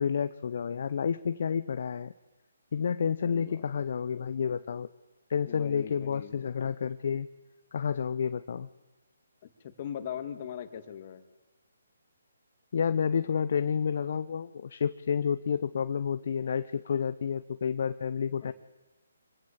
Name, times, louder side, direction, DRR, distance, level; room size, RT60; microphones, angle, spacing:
voice 1, 0.0-2.1 2.7-4.9 5.3-7.3 7.7-8.7 12.7-18.5, left 7 dB, 55° left, 13 dB, 0.7 m, -30 dB
voice 2, 3.2-3.7 5.5-6.4 9.6-11.2 18.4-18.5, left 9 dB, 40° left, 8 dB, 2.3 m, -40 dB
25.5 x 16.5 x 7.5 m, 1.1 s
figure-of-eight pair, 145°, 0 cm